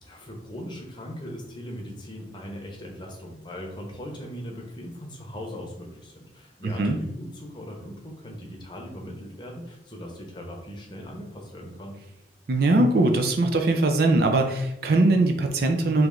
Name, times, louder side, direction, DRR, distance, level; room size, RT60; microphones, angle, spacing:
voice 1, 0.0-12.0, equal, 25° left, 0 dB, 0.8 m, -39 dB
voice 2, 6.6-7.0 12.5-16.1, right 2 dB, 55° right, 4 dB, 0.4 m, -21 dB
3.2 x 3.1 x 3.6 m, 0.84 s
head